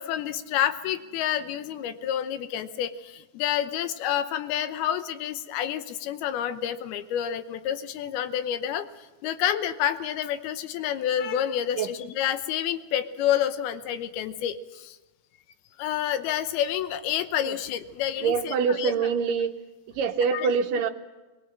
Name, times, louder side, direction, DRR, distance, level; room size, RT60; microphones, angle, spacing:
voice 1, 0.0-15.0 15.8-19.1 20.3-20.5, left 10 dB, 80° left, 10 dB, 2.9 m, -29 dB
voice 2, 18.2-19.5 20.0-20.9, right 6 dB, 70° right, 7 dB, 2.2 m, -25 dB
23.0 x 21.5 x 7.5 m, 1.2 s
omnidirectional pair, 4.4 m